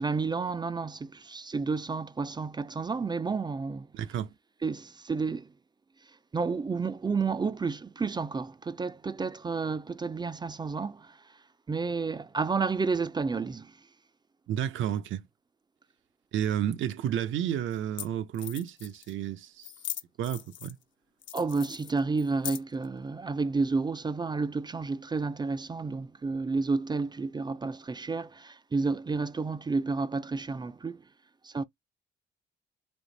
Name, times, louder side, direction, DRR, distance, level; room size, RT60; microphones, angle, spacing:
voice 1, 0.0-3.9 4.6-5.5 6.3-11.2 11.7-13.7 21.3-31.0 31.4-31.6, right 4 dB, 20° right, 0.4 m, -31 dB
voice 2, 3.9-4.3 14.5-15.2 16.3-19.7 20.2-20.8, right 10 dB, 75° right, 0.7 m, -31 dB
sound 1, 16.9-17.0 17.7-17.8 18.0-18.1 18.3-19.1 19.6-20.8 21.2-22.8, left 12 dB, 70° left, 0.6 m, -39 dB
3.6 x 2.7 x 3.9 m
cardioid pair, 90°, 20 cm